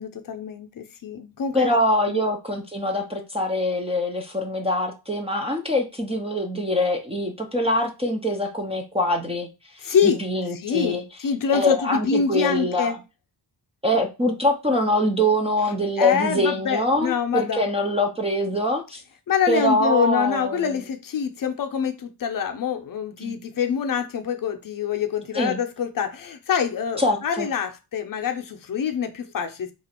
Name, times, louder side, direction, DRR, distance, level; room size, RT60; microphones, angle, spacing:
voice 1, 0.0-1.8 2.1-2.2 9.8-10.2 10.5-13.0 16.0-17.7 19.3-29.7, left 7 dB, 55° left, 0.6 m, -25 dB
voice 2, 1.5-9.5 9.7-11.0 11.5-12.9 13.8-19.0 19.5-20.8 23.2-23.4 25.3-25.6 27.0-27.5, left 1 dB, 15° right, 0.4 m, -24 dB
3.0 x 2.4 x 4.2 m
wide cardioid pair, 160°, 41 cm